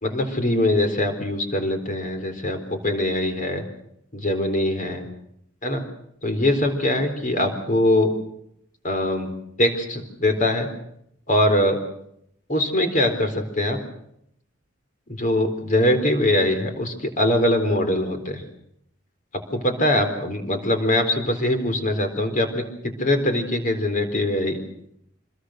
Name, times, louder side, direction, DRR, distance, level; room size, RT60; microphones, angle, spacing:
voice 1, 0.0-3.6 4.1-5.1 5.6-5.8 6.2-8.1 8.8-9.3 9.6-10.7 11.3-11.8 12.5-13.8 15.1-18.4 19.5-24.6, left 1 dB, 40° left, 6 dB, 4.0 m, -22 dB
26.0 x 21.5 x 6.5 m, 0.75 s
head